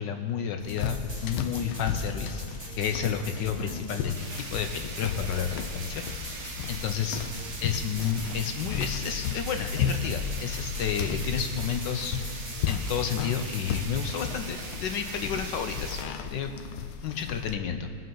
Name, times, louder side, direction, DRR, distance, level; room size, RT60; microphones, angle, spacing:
voice 1, 0.0-2.5 2.8-6.4 6.7-7.2 7.6-12.2 12.7-16.0 16.3-16.5 17.0-17.9, left 7 dB, 70° left, 6 dB, 1.2 m, -31 dB
sound 1, 0.6-17.5, left 7 dB, 90° left, 1.6 m, -34 dB
sound 2, 0.7-14.4, right 1 dB, 15° right, 1.2 m, -45 dB
sound 3, 4.1-16.0, right 3 dB, 45° right, 1.0 m, -41 dB
21.0 x 7.5 x 3.9 m, 2.1 s
omnidirectional pair, 2.3 m